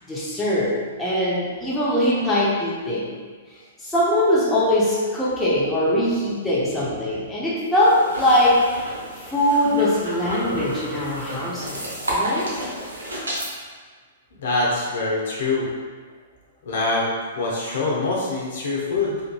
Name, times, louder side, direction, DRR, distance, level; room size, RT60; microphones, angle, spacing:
voice 1, 0.1-3.1 3.8-8.8 9.1-11.8 12.1-12.5, left 1 dB, 10° left, -7 dB, 0.6 m, -21 dB
sound 1, 7.7-13.5, right 1 dB, 90° right, 0.7 m, -31 dB
voice 2, 14.4-15.7 16.6-19.2, left 3 dB, 65° left, -4 dB, 0.7 m, -24 dB
2.8 x 2.6 x 2.2 m, 1.5 s
hypercardioid pair, 120°, 0 cm